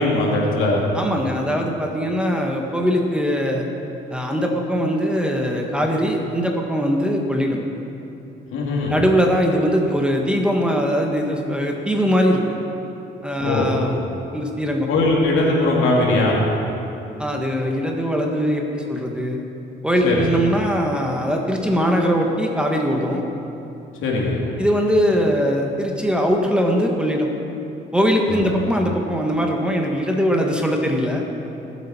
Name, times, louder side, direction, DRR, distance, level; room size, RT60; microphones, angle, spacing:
voice 1, 0.0-0.8 8.5-8.9 13.4-13.7 14.9-16.3 20.0-20.2 24.0-24.4 28.3-28.5, left 2 dB, 85° left, -3 dB, 2.8 m, -19 dB
voice 2, 0.9-3.6 4.1-7.6 8.9-12.4 13.2-14.0 14.3-14.9 17.2-19.4 19.8-23.2 24.6-27.3 27.9-31.2, equal, 5° right, 1 dB, 1.5 m, -21 dB
19.5 x 8.1 x 4.4 m, 3.0 s
cardioid pair, 90°, 20 cm